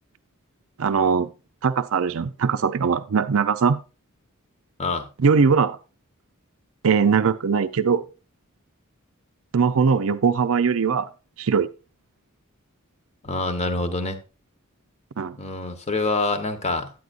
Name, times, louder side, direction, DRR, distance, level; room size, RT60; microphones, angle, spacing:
voice 1, 0.8-1.3 1.6-3.8 5.2-5.8 6.8-8.0 9.5-11.1 11.4-11.7 15.2-15.3, right 5 dB, 70° right, 0.5 m, -20 dB
voice 2, 13.2-14.2 15.4-16.9, left 3 dB, 30° left, 1.0 m, -26 dB
9.4 x 9.2 x 2.5 m
head